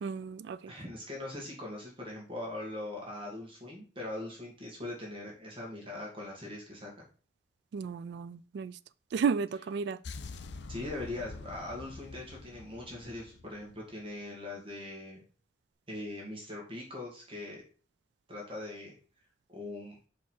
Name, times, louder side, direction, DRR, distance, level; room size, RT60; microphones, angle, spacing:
voice 1, 0.0-0.7 7.7-8.8 9.1-10.0, right 6 dB, 65° right, 0.3 m, -33 dB
voice 2, 0.7-6.9 10.7-15.2 15.9-17.6 18.3-19.0 19.5-20.0, left 2 dB, 30° right, 1.9 m, -41 dB
sound 1, 10.0-14.1, left 3 dB, 70° left, 0.6 m, -46 dB
5.8 x 4.6 x 4.3 m
head